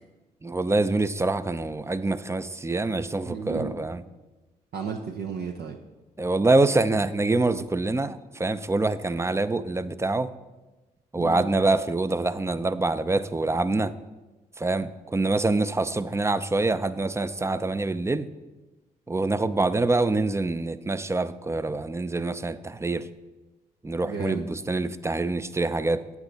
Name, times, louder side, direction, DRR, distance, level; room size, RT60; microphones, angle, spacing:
voice 1, 0.4-4.0 6.2-10.3 11.1-13.9 14.6-18.3 19.1-23.1 23.8-26.1, right 2 dB, 15° right, 14 dB, 0.5 m, -25 dB
voice 2, 3.3-3.8 4.7-5.8 11.2-11.5 24.0-24.4, right 6 dB, 65° right, 4 dB, 0.7 m, -33 dB
8.6 x 8.2 x 4.0 m, 1.1 s
supercardioid pair, 50°, 18 cm